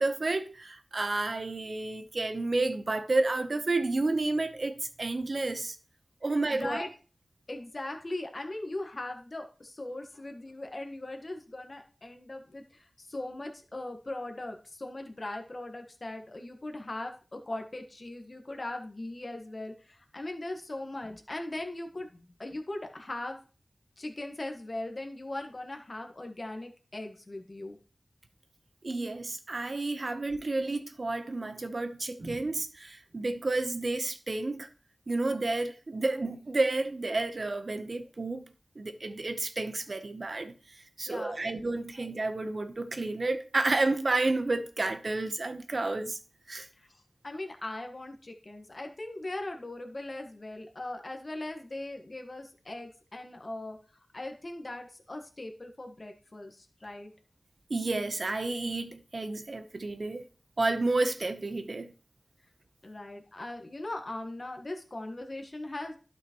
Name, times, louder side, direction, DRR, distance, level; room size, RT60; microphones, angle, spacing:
voice 1, 0.0-5.8 6.2-6.9 28.8-34.7 35.1-38.4 38.8-40.5 41.0-46.2 46.5-46.7 57.7-60.2 60.6-61.9, right 2 dB, 60° right, 0.9 m, -30 dB
voice 2, 6.5-6.9 7.5-22.1 22.4-23.4 24.0-27.8 41.1-41.6 41.9-42.0 47.2-53.8 54.1-57.1 62.8-66.0, left 2 dB, 45° left, 1.4 m, -39 dB
12.0 x 5.9 x 3.0 m
wide cardioid pair, 70°, 0 cm